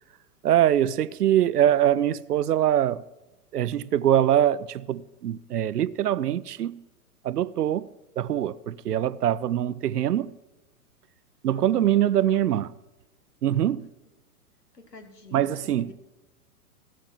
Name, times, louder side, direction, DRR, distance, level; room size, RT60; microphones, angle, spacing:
voice 1, 0.4-3.0 3.5-6.8 7.2-7.9 8.2-10.3 11.4-12.7 13.4-13.9 15.3-15.9, right 11 dB, 80° right, 0.7 m, -23 dB
voice 2, 11.5-11.9 12.3-12.5 14.7-15.9, left 2 dB, 85° left, 2.1 m, -47 dB
17.0 x 7.5 x 5.9 m
hypercardioid pair, 110°, 46 cm